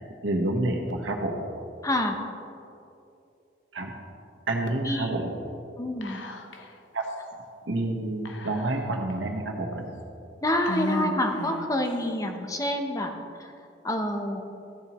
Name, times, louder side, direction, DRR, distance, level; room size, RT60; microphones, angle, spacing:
voice 1, 0.2-1.4 3.7-3.9 4.5-5.3 6.9-7.0 7.7-9.9, right 2 dB, 85° right, 2 dB, 1.2 m, -28 dB
voice 2, 1.8-2.2 4.8-5.2 5.8-6.2 10.4-13.1 13.4-13.5 13.8-14.4, left 1 dB, 20° left, 4 dB, 0.8 m, -27 dB
Whispering, 6.0-6.7 7.0-7.1 8.3-9.1 9.7-9.8 10.6-11.8, left 2 dB, 80° left, 0.8 m, -34 dB
14.5 x 7.1 x 3.0 m, 2.7 s
head